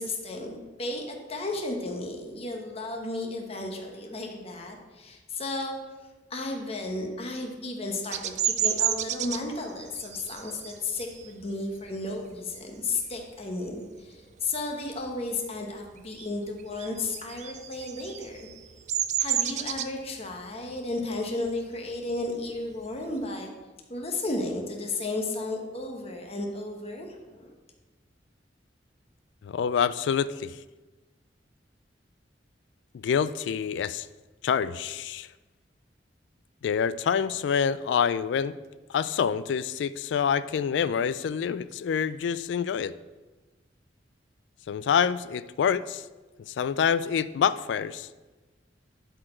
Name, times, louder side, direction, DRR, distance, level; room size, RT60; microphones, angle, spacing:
voice 1, 0.0-5.8 6.3-18.4 19.2-23.5 23.9-27.5, left 2 dB, 35° left, 2 dB, 1.1 m, -33 dB
Bird vocalization bird call bird song, 8.1-13.3 13.7-14.1 14.4-15.6 15.9-23.2, right 10 dB, 40° right, 0.4 m, -32 dB
voice 2, 29.4-30.6 32.9-34.1 34.4-35.3 36.6-38.6 38.9-42.9 44.7-46.0 46.5-48.1, left 7 dB, 70° left, 16 dB, 0.3 m, -26 dB
12.0 x 4.4 x 4.3 m, 1.2 s
head